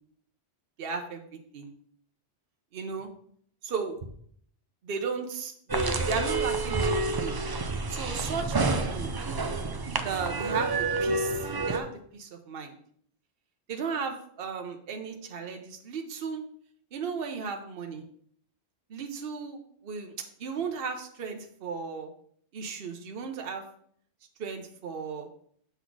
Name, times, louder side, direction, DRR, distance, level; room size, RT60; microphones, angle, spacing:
voice 1, 0.8-1.7 2.7-3.1 3.6-4.0 4.8-7.4 7.9-9.1 10.0-12.8 13.7-16.4 16.9-18.0 18.9-20.1 20.4-22.1 22.5-23.6 24.4-25.3, right 5 dB, 60° right, 4 dB, 1.0 m, -35 dB
sound 1, 5.7-11.8, right 3 dB, 40° right, 0.3 m, -29 dB
6.9 x 4.1 x 4.7 m, 0.63 s
omnidirectional pair, 1.1 m